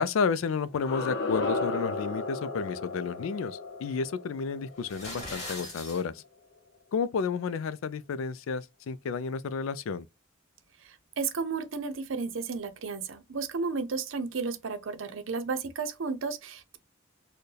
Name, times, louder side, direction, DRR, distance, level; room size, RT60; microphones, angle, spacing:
voice 1, 0.0-6.2 6.9-10.1, left 5 dB, 80° left, 0.4 m, -31 dB
sound 1, 0.7-5.6, left 3 dB, 60° left, 0.8 m, -34 dB
sound 2, 4.8-6.0, left 2 dB, 35° left, 1.9 m, -40 dB
voice 2, 11.2-16.8, right 4 dB, 70° right, 0.6 m, -33 dB
4.4 x 2.2 x 3.2 m
head